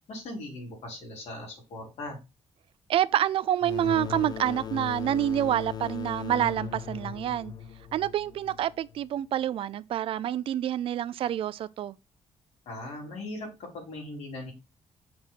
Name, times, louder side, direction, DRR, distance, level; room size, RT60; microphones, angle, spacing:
voice 1, 0.1-2.2 12.7-14.5, left 1 dB, 75° left, 3.8 m, -39 dB
voice 2, 2.9-7.5 7.9-12.0, right 11 dB, 55° right, 0.4 m, -27 dB
sound 1, 3.6-9.0, left 9 dB, 40° left, 0.5 m, -38 dB
6.1 x 4.2 x 5.6 m
cardioid pair, 165°, 11 cm